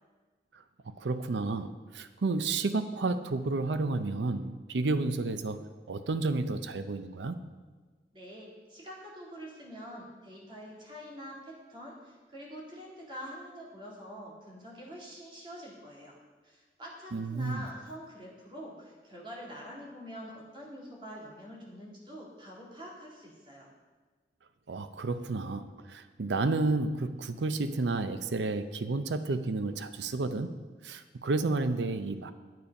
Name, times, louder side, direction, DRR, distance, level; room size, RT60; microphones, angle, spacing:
voice 1, 1.0-7.4 17.1-17.6 24.7-30.6 30.8-32.3, right 3 dB, 90° right, 11 dB, 0.6 m, -31 dB
voice 2, 8.1-16.2 16.4-23.7, equal, 30° right, -4 dB, 2.3 m, -45 dB
9.4 x 8.6 x 5.3 m, 1.4 s
head